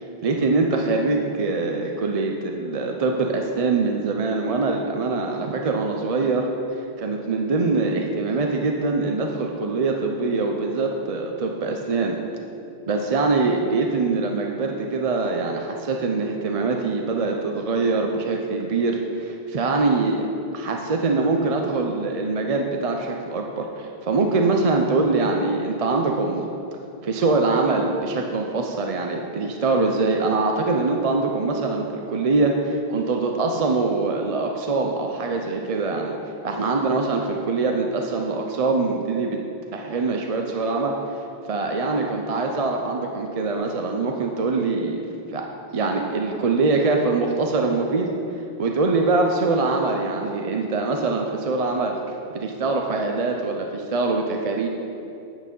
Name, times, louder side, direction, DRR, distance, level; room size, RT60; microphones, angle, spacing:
voice 1, 0.2-6.5 7.0-12.2 12.9-20.3 20.5-26.5 27.0-36.2 36.4-39.4 39.7-40.9 41.5-45.0 45.3-45.4 45.7-48.1 48.6-52.0 52.3-54.7, right 3 dB, 40° right, 2 dB, 0.6 m, -23 dB
9.0 x 5.9 x 5.4 m, 2.7 s
omnidirectional pair, 1.1 m